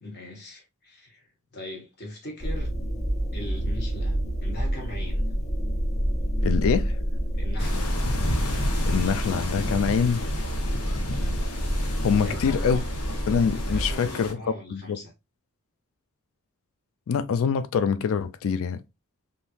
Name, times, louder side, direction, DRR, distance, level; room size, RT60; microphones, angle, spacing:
voice 1, 0.0-2.7 3.3-5.2 7.4-7.8 12.1-12.8 13.6-15.1, left 1 dB, 50° left, 1.4 m, -40 dB
sound 1, 2.4-13.9, equal, 35° left, 0.7 m, -28 dB
voice 2, 6.4-6.9 8.9-10.3 12.0-12.8 13.3-14.4 14.7-15.0 17.1-18.8, left 6 dB, 65° left, 0.4 m, -24 dB
sound 2, 7.6-14.3, left 1 dB, 80° left, 0.9 m, -33 dB
3.5 x 2.7 x 2.8 m
head